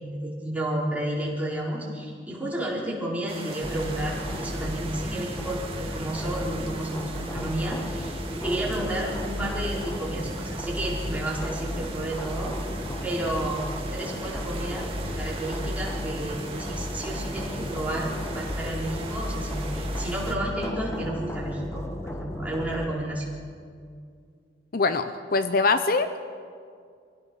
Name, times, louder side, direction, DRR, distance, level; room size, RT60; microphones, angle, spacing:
voice 1, 0.0-12.5 13.0-23.3, right 1 dB, 10° right, -5 dB, 4.3 m, -32 dB
sound 1, 3.3-20.3, right 3 dB, 30° right, 2.1 m, -40 dB
sound 2, 3.6-22.9, equal, 15° left, 1.2 m, -33 dB
voice 2, 24.7-26.2, left 3 dB, 50° left, 10 dB, 0.7 m, -23 dB
25.5 x 16.5 x 6.2 m, 2.2 s
head